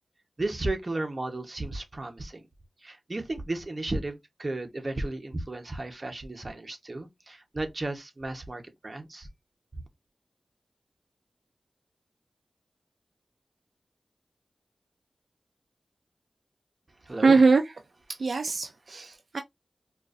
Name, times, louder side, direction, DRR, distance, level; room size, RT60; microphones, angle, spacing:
voice 1, 0.4-2.4 2.8-9.3 9.7-9.8 17.0-17.4, right 2 dB, 45° right, 1.0 m, -34 dB
voice 2, 17.2-17.8 18.1-19.4, right 4 dB, 80° right, 0.4 m, -22 dB
4.7 x 2.5 x 2.5 m
cardioid pair, 45°, 0 cm